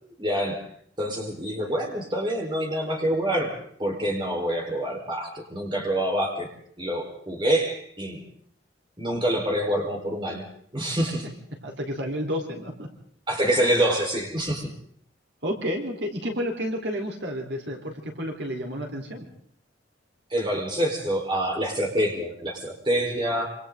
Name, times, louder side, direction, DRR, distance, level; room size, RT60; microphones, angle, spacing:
voice 1, 0.0-0.6 1.0-3.5 3.8-6.5 6.8-8.2 9.0-10.5 10.7-11.3 13.3-14.7 20.3-23.5, right 1 dB, 25° right, 0 dB, 4.8 m, -26 dB
voice 2, 11.6-12.9 15.4-19.3, equal, 70° right, 1 dB, 4.4 m, -31 dB
27.0 x 27.0 x 4.0 m, 0.62 s
head